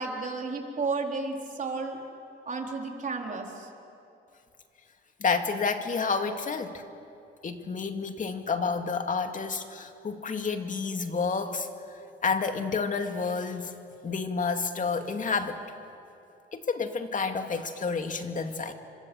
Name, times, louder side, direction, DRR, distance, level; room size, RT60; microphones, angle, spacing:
voice 1, 0.0-2.0 2.5-3.7, right 3 dB, 40° right, 1 dB, 4.1 m, -32 dB
voice 2, 5.2-6.8 7.4-13.7 14.0-15.6 16.5-18.7, left 5 dB, 40° left, 6 dB, 2.4 m, -30 dB
29.0 x 25.5 x 8.0 m, 2.7 s
cardioid pair, 90°, 20 cm